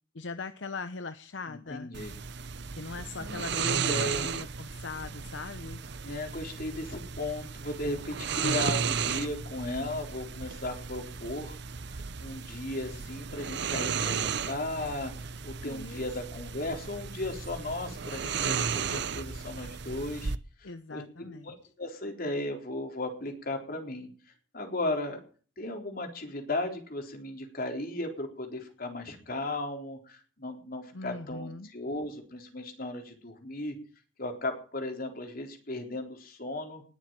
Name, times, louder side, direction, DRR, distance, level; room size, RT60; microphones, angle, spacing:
voice 1, 0.1-1.9 2.8-5.8 15.6-16.0 20.6-21.6 30.9-31.7, left 4 dB, 75° left, 10 dB, 0.9 m, -40 dB
voice 2, 1.5-2.2 3.1-4.3 6.0-11.6 11.9-15.1 15.4-20.3 20.6-24.1 24.5-25.2 25.6-33.8 34.2-36.8, left 1 dB, 50° left, 3 dB, 4.0 m, -36 dB
sound 1, 1.9-20.4, right 6 dB, 60° right, 0.8 m, -34 dB
20.0 x 7.4 x 7.7 m, 0.42 s
head